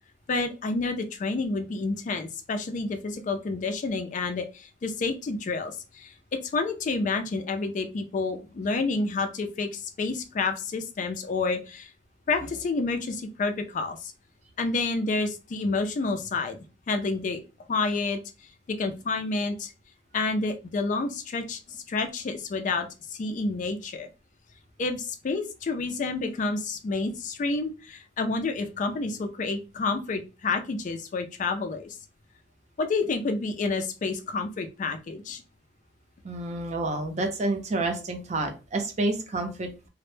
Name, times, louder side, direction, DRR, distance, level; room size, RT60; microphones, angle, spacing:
voice 1, 0.3-11.9 12.3-14.1 14.6-17.4 17.7-18.2 18.7-19.7 20.1-21.6 21.9-24.1 24.8-32.0 32.8-35.4, left 3 dB, 45° left, 6 dB, 0.3 m, -29 dB
voice 2, 36.2-39.9, right 2 dB, 40° right, 4 dB, 0.5 m, -29 dB
2.0 x 2.0 x 3.1 m, 0.31 s
head